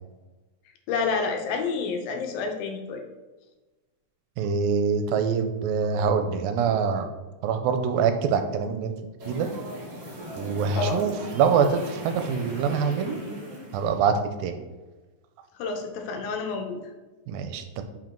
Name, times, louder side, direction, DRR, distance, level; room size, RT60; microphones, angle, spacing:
voice 1, 0.9-3.0 10.8-11.0 15.6-16.8, left 4 dB, 90° left, 5 dB, 2.6 m, -29 dB
voice 2, 4.4-7.1 7.4-8.9 9.3-9.5 10.4-13.2 13.7-14.6 17.3-17.8, right 6 dB, 85° right, 7 dB, 2.3 m, -24 dB
sound 1, 9.2-14.0, right 1 dB, 35° right, 2.2 m, -38 dB
5.7 x 5.2 x 4.4 m, 1.2 s
omnidirectional pair, 4.2 m